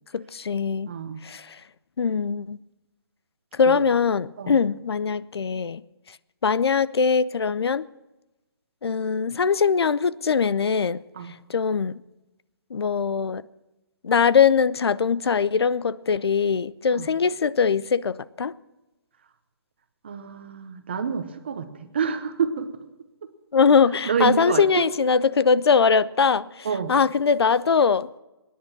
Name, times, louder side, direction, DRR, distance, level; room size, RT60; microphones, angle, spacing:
voice 1, 0.1-0.9 1.2-1.6 2.0-2.6 3.5-5.8 6.4-7.9 8.8-11.0 11.5-11.9 12.7-13.4 14.0-18.5 23.5-28.1, left 6 dB, 85° left, 0.6 m, -21 dB
voice 2, 0.9-1.2 3.6-3.8 4.4-4.6 11.1-11.3 16.9-17.1 20.0-22.7 24.0-24.9 26.6-26.9, right 6 dB, 25° right, 0.8 m, -28 dB
20.5 x 10.0 x 6.0 m
hypercardioid pair, 175°, 13 cm